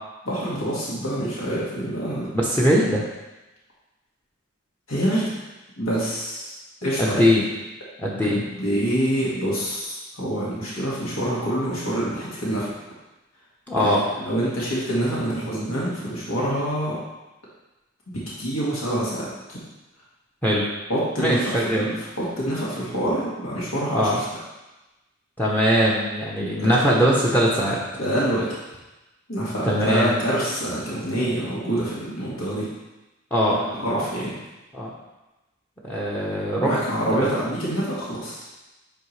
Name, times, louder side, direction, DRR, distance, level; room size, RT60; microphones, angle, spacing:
voice 1, 0.3-2.3 4.9-5.4 5.8-6.6 6.8-7.3 8.2-12.7 13.8-14.0 14.2-17.0 18.1-19.6 20.9-24.4 26.4-26.9 28.0-28.5 29.3-32.7 33.5-34.3 36.6-38.5, right 1 dB, 80° left, -7 dB, 1.9 m, -26 dB
voice 2, 2.3-3.0 7.0-7.4 8.0-8.4 13.7-14.0 20.4-20.6 21.2-21.9 23.9-24.2 25.4-27.8 29.6-30.2 33.3-33.6 33.9-34.0 34.7-34.9 35.8-36.7 37.2-37.3, equal, 10° left, -4 dB, 0.8 m, -21 dB
8.6 x 4.6 x 3.2 m, 1.0 s
head